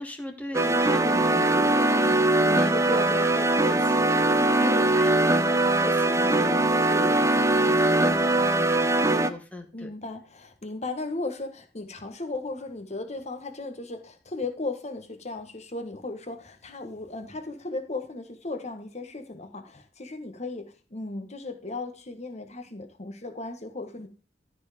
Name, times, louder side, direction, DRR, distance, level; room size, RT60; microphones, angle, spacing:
voice 1, 0.0-4.0 4.6-9.9, left 1 dB, 10° left, 3 dB, 1.6 m, -37 dB
sound 1, 0.5-9.3, right 2 dB, 15° right, 0.6 m, -21 dB
voice 2, 4.1-4.9 9.7-24.1, left 2 dB, 40° left, 6 dB, 1.5 m, -36 dB
13.0 x 4.6 x 5.1 m, 0.34 s
head